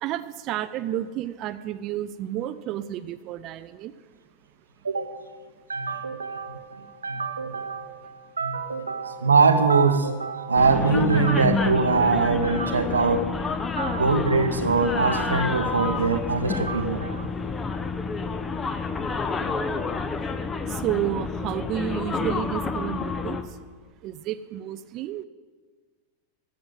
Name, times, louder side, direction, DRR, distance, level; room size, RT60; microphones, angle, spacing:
voice 1, 0.0-3.9 20.7-23.4 24.0-25.2, right 12 dB, 35° right, 14 dB, 0.4 m, -31 dB
voice 2, 4.8-5.2 5.7-13.4 13.8-17.3, right 4 dB, 75° right, 8 dB, 0.9 m, -23 dB
sound 1, 10.6-23.4, left 4 dB, 20° left, 0.8 m, -29 dB
13.0 x 7.3 x 7.8 m, 1.5 s
figure-of-eight pair, 90°, 0 cm